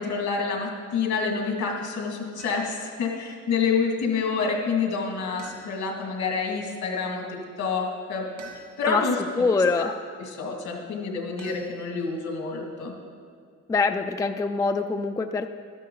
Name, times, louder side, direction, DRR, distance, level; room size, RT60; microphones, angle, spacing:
voice 1, 0.0-8.3 8.8-9.2 9.8-9.9 10.3-12.9, left 5 dB, 75° left, 1 dB, 2.2 m, -28 dB
sound 1, 2.4-2.9 5.4-6.1 8.4-9.1 11.4-12.3, right 4 dB, 70° right, 2.1 m, -47 dB
voice 2, 8.9-10.0 13.7-15.5, left 4 dB, 10° left, 8 dB, 0.4 m, -24 dB
12.5 x 10.5 x 3.9 m, 2.2 s
cardioid pair, 90°, 30 cm